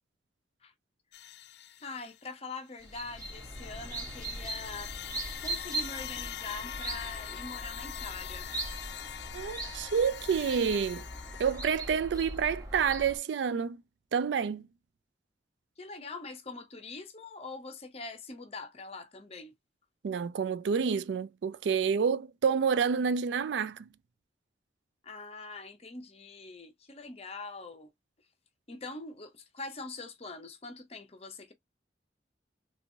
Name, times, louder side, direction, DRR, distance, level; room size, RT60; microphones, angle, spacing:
sound 1, 1.1-2.3 2.7-11.6, left 10 dB, 70° left, 0.4 m, -43 dB
voice 1, 1.8-4.9 5.4-8.5 15.8-19.5 25.0-27.9 28.7-31.5, left 3 dB, 35° left, 0.8 m, -43 dB
sound 2, 2.8-13.2, right 2 dB, 20° right, 1.3 m, -40 dB
voice 2, 9.3-11.0 11.4-13.8 14.1-14.7 20.0-23.9, right 6 dB, 80° right, 0.4 m, -29 dB
3.4 x 2.9 x 2.6 m
head